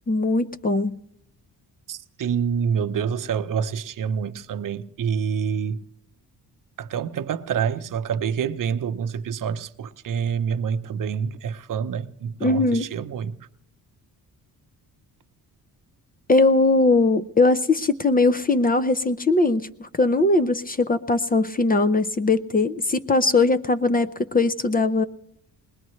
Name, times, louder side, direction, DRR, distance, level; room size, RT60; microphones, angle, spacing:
voice 1, 0.1-1.0 12.4-12.9 16.3-25.0, left 3 dB, 25° left, 0.5 m, -20 dB
voice 2, 1.9-5.8 6.8-13.5, right 7 dB, 55° right, 0.8 m, -27 dB
21.5 x 19.5 x 3.1 m
cardioid pair, 95°, 37 cm